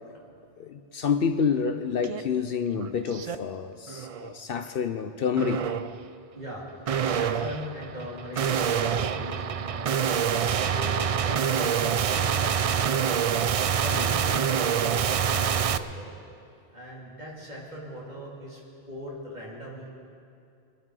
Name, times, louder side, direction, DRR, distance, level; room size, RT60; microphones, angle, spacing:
voice 1, 0.6-5.7 13.9-14.0, left 6 dB, 65° left, 8 dB, 0.8 m, -28 dB
sound 1, 2.0-2.2 2.6-3.4 3.9-4.3 5.4-6.0 6.9-15.8, right 7 dB, 60° right, 0.3 m, -26 dB
voice 2, 6.3-10.0 10.5-13.1 13.5-16.1 16.7-18.6 18.9-19.9, equal, 40° right, -4 dB, 3.2 m, -40 dB
23.5 x 11.0 x 4.9 m, 2.5 s
omnidirectional pair, 1.1 m